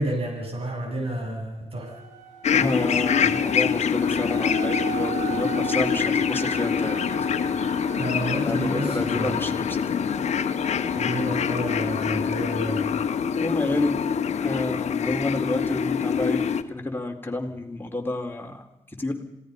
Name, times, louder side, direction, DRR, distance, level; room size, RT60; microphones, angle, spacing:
voice 1, 0.0-1.9 3.1-3.5 8.0-9.6 10.9-12.8, right 1 dB, 50° right, 1 dB, 7.8 m, -30 dB
sound 1, 1.8-13.6, right 11 dB, 85° right, 3.9 m, -39 dB
sound 2, 2.4-16.6, left 7 dB, 70° left, 1.2 m, -25 dB
voice 2, 2.5-7.0 8.4-9.9 13.4-13.9 14.4-16.4 16.7-18.6 19.0-19.2, left 2 dB, 15° left, 3 dB, 4.3 m, -29 dB
26.5 x 18.0 x 5.4 m, 0.87 s
supercardioid pair, 45°, 12 cm